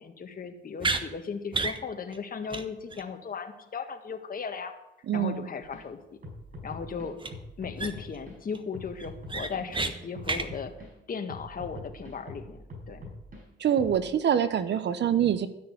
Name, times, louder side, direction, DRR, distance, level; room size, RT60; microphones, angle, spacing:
voice 1, 0.0-4.7 5.1-6.2 6.6-7.2 7.6-10.7 11.1-12.6 12.9-13.1, left 6 dB, 45° left, 6 dB, 1.8 m, -36 dB
sound 1, 0.8-1.0 1.5-1.8 2.1-2.2 2.5-2.6 2.9-3.0 7.2-7.3 7.8-8.2 8.5-8.6 9.0-9.9 10.2-10.5, right 3 dB, 25° right, 1.2 m, -30 dB
voice 2, 5.1-5.5 13.6-15.5, right 9 dB, 65° right, 12 dB, 1.2 m, -25 dB
sound 2, 5.6-5.9 6.2-8.4 8.7-10.9 11.3-13.4 13.8-14.0, left 1 dB, 45° right, 5.2 m, -44 dB
12.5 x 6.6 x 9.3 m, 0.92 s
cardioid pair, 85°, 20 cm